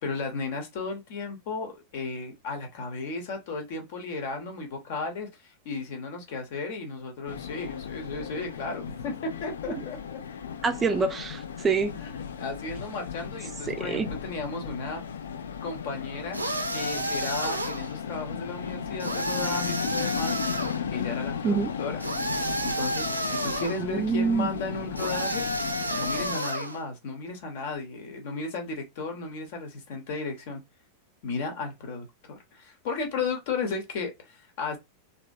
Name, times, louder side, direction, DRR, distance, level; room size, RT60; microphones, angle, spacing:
voice 1, 0.0-10.2 12.0-15.0 15.6-16.4 16.7-20.4 20.9-22.0 22.6-25.5 25.9-30.6 31.2-34.8, left 4 dB, 50° left, 1.0 m, -34 dB
sound 1, 7.3-26.4, left 7 dB, 65° left, 0.3 m, -36 dB
voice 2, 10.6-12.0 13.7-14.1 21.4-21.7 23.8-24.5, right 5 dB, 20° right, 0.4 m, -26 dB
sound 2, 16.3-17.9 19.0-20.8 22.0-23.8 25.0-26.8, right 1 dB, 85° right, 0.5 m, -30 dB
2.9 x 2.7 x 2.6 m
figure-of-eight pair, 90°, 0 cm